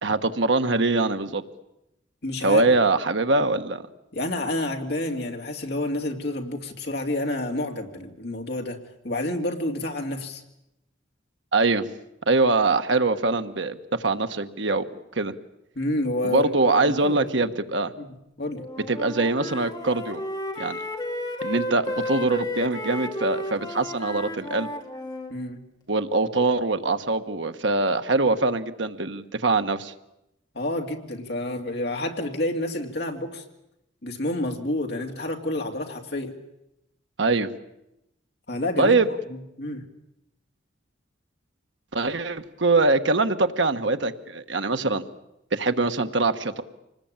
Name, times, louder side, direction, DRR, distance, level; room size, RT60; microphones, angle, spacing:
voice 1, 0.0-1.4 2.4-3.8 11.5-11.8 12.3-14.9 15.2-15.3 16.2-17.9 18.9-20.2 20.6-20.8 21.4-24.7 25.9-29.9 37.2-37.5 38.8-39.1 41.9-45.0 45.5-46.6, right 3 dB, 75° right, 8 dB, 1.3 m, -23 dB
voice 2, 2.2-2.6 4.1-8.8 9.0-10.4 15.8-16.5 16.8-17.5 18.0-18.1 18.4-18.6 25.3-25.6 30.5-33.4 34.0-36.3 38.5-39.0 39.6-39.8, left 1 dB, 60° left, 3 dB, 2.6 m, -29 dB
Wind instrument woodwind instrument, 18.6-25.3, left 1 dB, 20° left, 2.4 m, -33 dB
26.0 x 20.0 x 8.9 m, 0.86 s
head